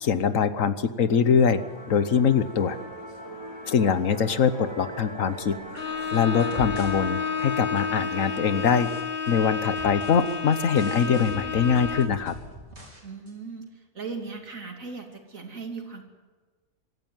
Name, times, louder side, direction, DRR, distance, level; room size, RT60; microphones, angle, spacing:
voice 1, 0.0-1.6 1.9-2.8 3.7-5.5 6.1-8.9 9.3-12.3, left 7 dB, 70° left, 12 dB, 1.4 m, -23 dB
Musical instrument, 1.2-9.0, right 1 dB, 20° right, 3.1 m, -41 dB
Bowed string instrument, 5.7-12.3, left 6 dB, 40° left, 1.6 m, -31 dB
sound 1, 5.8-7.0 7.3-8.0 8.5-9.4 9.8-13.0 13.3-13.4, right 1 dB, 50° right, 5.3 m, -44 dB
voice 2, 13.0-16.0, right 4 dB, 70° right, 3 dB, 3.2 m, -38 dB
24.5 x 13.5 x 9.4 m, 1.4 s
omnidirectional pair, 1.5 m